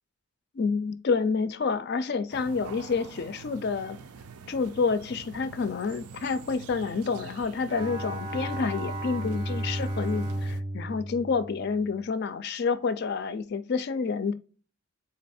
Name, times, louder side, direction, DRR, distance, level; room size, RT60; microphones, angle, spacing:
voice 1, 0.5-4.0 4.5-14.3, left 5 dB, 45° left, 0.4 m, -29 dB
sound 1, 2.3-10.6, right 6 dB, 85° right, 0.5 m, -46 dB
Bowed string instrument, 7.7-12.1, right 1 dB, 20° right, 0.5 m, -33 dB
4.0 x 3.1 x 4.2 m
head